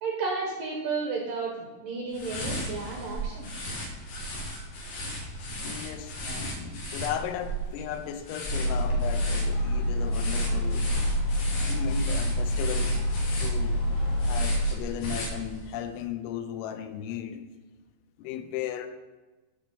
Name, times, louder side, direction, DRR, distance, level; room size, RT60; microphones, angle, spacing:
voice 1, 0.0-3.5, right 4 dB, 85° right, -1 dB, 2.0 m, -32 dB
sound 1, 2.1-15.8, equal, 60° left, 2.3 m, -36 dB
voice 2, 5.5-10.9 11.7-12.9 13.4-17.4 18.2-18.9, left 10 dB, 85° left, 9 dB, 3.0 m, -36 dB
sound 2, 8.4-14.7, equal, 45° left, 2.2 m, -27 dB
8.6 x 5.9 x 5.4 m, 1.2 s
omnidirectional pair, 5.4 m